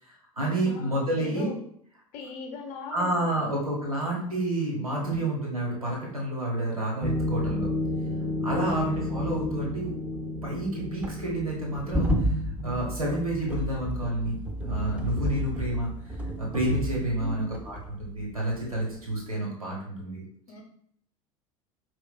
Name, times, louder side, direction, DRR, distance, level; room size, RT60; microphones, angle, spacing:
voice 1, 0.0-1.5 2.9-7.7 8.4-9.9 10.4-20.2, right 1 dB, 85° right, -3 dB, 1.1 m, -30 dB
voice 2, 0.6-1.6 2.1-3.6 5.0-5.3 17.2-17.6 20.5-20.6, left 4 dB, 45° left, 2 dB, 0.7 m, -41 dB
sound 1, 7.0-18.5 18.8-19.1, left 1 dB, 5° right, 0.4 m, -31 dB
4.4 x 2.4 x 2.2 m, 0.68 s
figure-of-eight pair, 75°, 18 cm